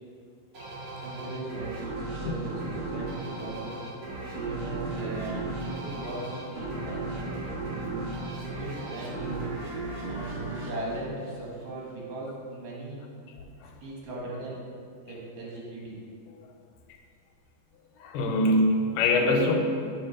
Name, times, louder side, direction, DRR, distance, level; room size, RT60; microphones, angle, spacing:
sound 1, 0.5-11.8, right 2 dB, 55° right, 1.6 m, -36 dB
voice 1, 1.0-3.8 4.2-8.0 8.4-9.5 10.1-13.0 13.8-14.6 15.1-16.0, right 2 dB, 75° right, -4 dB, 2.9 m, -38 dB
voice 2, 9.9-10.3 18.0-19.5, left 1 dB, 85° left, 3 dB, 2.2 m, -24 dB
6.8 x 3.4 x 5.9 m, 2.2 s
omnidirectional pair, 3.9 m